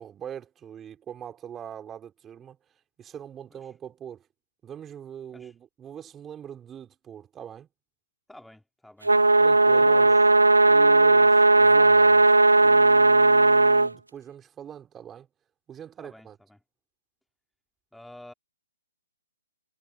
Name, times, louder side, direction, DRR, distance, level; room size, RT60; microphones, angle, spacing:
voice 1, 0.0-2.6 3.0-4.3 4.6-7.7 9.4-10.2 10.6-15.3 15.7-16.4, right 9 dB, 15° right, 5.0 m, -41 dB
voice 2, 8.3-9.1 9.7-10.3 16.0-16.6 17.9-18.3, left 1 dB, ahead, 3.2 m, -50 dB
sound 1, 9.0-13.9, right 2 dB, 80° right, 0.3 m, -17 dB
figure-of-eight pair, 130°, 0 cm